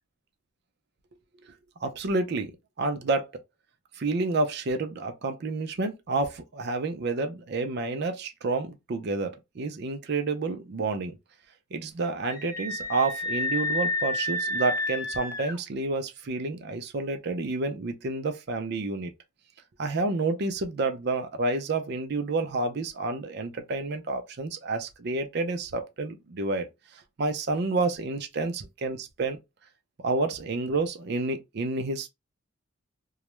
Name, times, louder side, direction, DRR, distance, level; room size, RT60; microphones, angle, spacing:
voice 1, 1.8-3.3 4.0-11.2 11.7-19.1 19.8-26.7 27.2-29.4 30.0-32.1, right 3 dB, 55° right, 0.5 m, -29 dB
Screaming, 12.2-15.6, left 2 dB, 20° left, 0.5 m, -30 dB
2.3 x 2.0 x 3.0 m
head